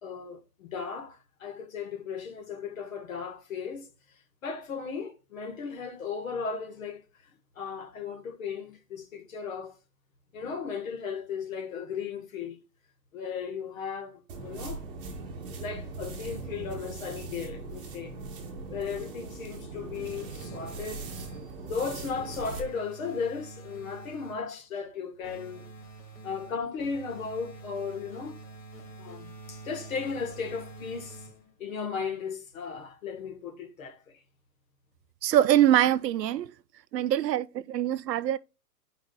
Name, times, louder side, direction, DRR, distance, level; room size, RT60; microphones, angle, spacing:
voice 1, 0.0-3.9 4.4-7.0 7.5-9.7 10.3-12.6 13.1-14.8 15.5-18.2 18.7-21.1 21.6-25.7 26.2-28.4 29.0-31.3 31.6-34.0, left 5 dB, 50° left, 1.5 m, -36 dB
sound 1, 14.3-22.7, right 3 dB, 30° right, 1.4 m, -40 dB
sound 2, 19.9-21.6 22.0-24.5 25.2-31.6, right 3 dB, 80° left, 2.9 m, -47 dB
voice 2, 35.2-36.5 36.9-38.4, right 12 dB, 75° right, 0.6 m, -24 dB
11.0 x 4.9 x 2.3 m
hypercardioid pair, 165°, 50 cm